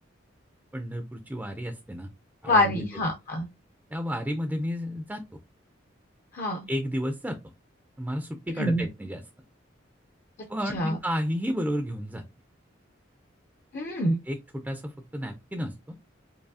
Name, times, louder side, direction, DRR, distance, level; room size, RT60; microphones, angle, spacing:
voice 1, 0.7-2.1 2.4-2.8 3.9-5.2 6.7-7.4 8.0-9.2 10.5-12.2 14.3-16.0, equal, 10° right, 6 dB, 0.4 m, -32 dB
voice 2, 2.4-3.5 6.3-6.7 8.6-8.9 10.7-11.0 13.7-14.2, left 1 dB, 45° left, 2 dB, 0.6 m, -25 dB
4.6 x 2.7 x 2.7 m, 0.24 s
head